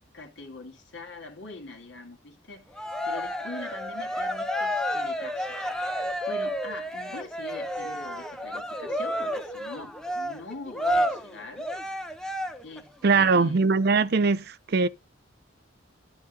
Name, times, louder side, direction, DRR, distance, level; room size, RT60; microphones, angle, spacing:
voice 1, 0.1-11.7 12.6-13.6, left 3 dB, 70° left, 2.1 m, -43 dB
Cheering, 2.7-12.8, equal, 5° left, 0.7 m, -31 dB
voice 2, 13.0-14.9, right 4 dB, 50° right, 0.5 m, -21 dB
10.0 x 5.0 x 4.0 m
head